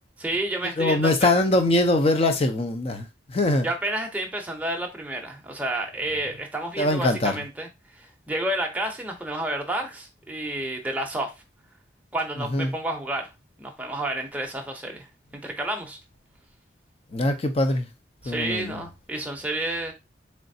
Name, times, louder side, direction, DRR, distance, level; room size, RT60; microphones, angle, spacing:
voice 1, 0.2-1.3 3.6-7.7 7.9-11.3 12.1-13.3 13.6-15.1 15.3-16.0 18.2-19.9, right 1 dB, 10° right, 0.7 m, -30 dB
voice 2, 0.8-3.7 6.8-7.4 12.4-12.7 17.1-17.9 18.2-18.8, left 2 dB, 35° left, 0.6 m, -22 dB
3.9 x 3.3 x 2.7 m
head